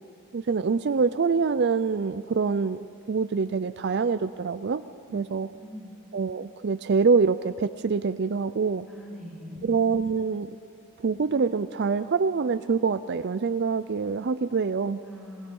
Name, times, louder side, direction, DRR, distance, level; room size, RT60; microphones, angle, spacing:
voice 1, 0.3-4.8 5.1-5.5 6.1-8.9 9.6-10.6 11.0-15.0, right 5 dB, 50° right, 12 dB, 0.4 m, -25 dB
voice 2, 5.5-5.9 8.9-9.8 15.0-15.5, left 1 dB, ahead, -3 dB, 5.8 m, -42 dB
27.5 x 20.0 x 5.4 m, 2.6 s
head